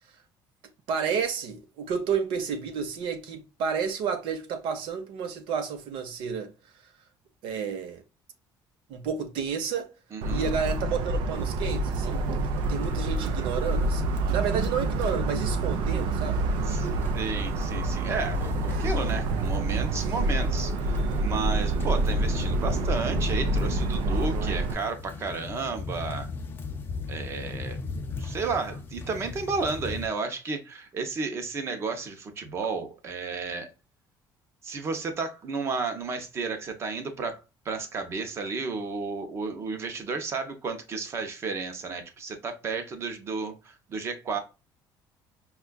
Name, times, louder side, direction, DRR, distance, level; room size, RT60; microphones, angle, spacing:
voice 1, 0.9-6.5 7.4-8.0 8.9-9.9 10.3-12.3 12.7-17.1, right 6 dB, 85° right, 0.8 m, -31 dB
voice 2, 10.1-10.5 16.7-26.3 27.1-27.8 28.2-33.7 34.6-44.4, right 4 dB, 30° right, 0.7 m, -32 dB
Motor vehicle (road) / Siren, 10.2-24.7, right 2 dB, 65° right, 0.4 m, -27 dB
sound 1, 11.4-11.5 11.7-11.8 12.0-12.2 12.6-30.1, left 4 dB, 25° left, 0.4 m, -39 dB
5.4 x 2.3 x 2.2 m
cardioid pair, 180°, 9 cm